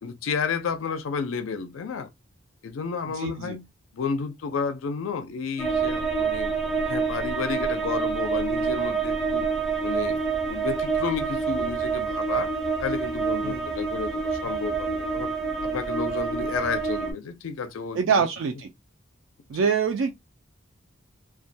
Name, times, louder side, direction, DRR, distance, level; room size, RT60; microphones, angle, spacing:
voice 1, 0.0-2.1 2.6-3.7 3.9-6.5 6.9-9.5 9.8-10.2 10.5-12.5 12.8-15.3 15.6-18.0 19.5-19.7, left 5 dB, 85° left, 0.4 m, -31 dB
voice 2, 3.1-3.6 13.4-13.7 17.9-18.7 19.5-20.1, right 6 dB, 70° right, 0.3 m, -25 dB
sound 1, 5.6-17.1, right 5 dB, ahead, 0.4 m, -27 dB
2.2 x 2.1 x 2.6 m
head